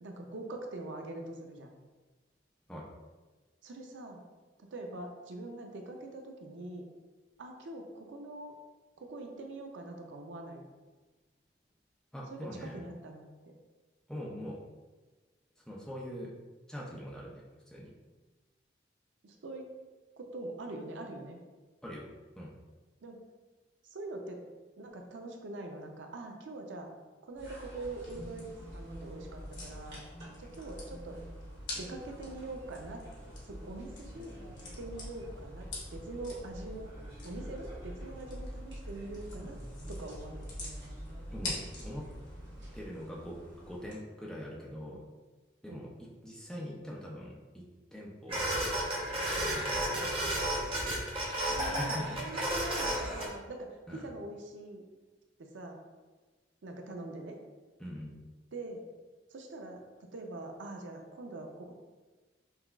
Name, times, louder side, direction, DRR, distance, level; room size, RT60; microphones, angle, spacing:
voice 1, 0.0-1.7 3.6-4.3 4.6-6.8 7.4-8.5 9.0-10.7 12.3-13.5 19.2-19.7 20.2-21.4 23.0-23.2 23.8-24.4 24.8-26.9 27.2-30.0 30.4-31.2 31.8-34.4 34.8-36.9 37.2-39.6 39.9-40.5 45.7-45.8 50.4-50.5 51.5-54.9 55.4-55.8 56.6-57.4 58.5-58.8 59.3-61.7, right 2 dB, 90° right, 3 dB, 0.5 m, -43 dB
voice 2, 12.1-12.8 14.1-14.6 15.7-16.3 16.7-17.9 21.8-22.1 22.4-22.5 41.3-42.1 42.7-45.0 45.6-45.9 46.2-47.7 47.9-48.4 49.4-49.7 51.5-52.1 53.9-54.1 57.8-58.2, equal, 5° left, -4 dB, 0.4 m, -42 dB
sound 1, 27.3-42.8, equal, 65° right, 1.4 m, -46 dB
sound 2, 27.8-44.0, left 2 dB, 85° left, 1.2 m, -47 dB
sound 3, 48.3-53.3, right 1 dB, 30° right, 0.7 m, -32 dB
5.5 x 2.3 x 2.3 m, 1.3 s
head